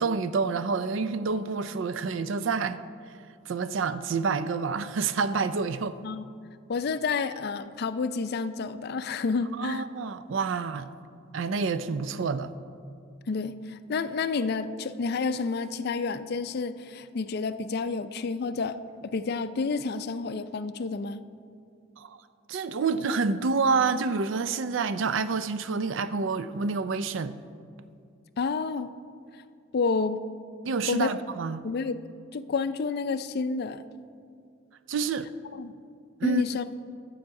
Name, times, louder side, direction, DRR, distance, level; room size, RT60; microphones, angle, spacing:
voice 1, 0.0-2.8 3.5-6.0 9.6-10.9 11.3-12.5 22.0-22.2 22.5-27.4 30.6-31.6 34.9-35.3 36.2-36.6, right 4 dB, 65° right, 0.4 m, -28 dB
voice 2, 6.7-9.8 13.3-21.2 28.4-28.9 29.7-30.2 30.9-31.1 31.6-32.0 32.3-33.8 35.5-35.7 36.2-36.6, left 4 dB, 50° left, 0.4 m, -29 dB
11.5 x 7.9 x 4.7 m
head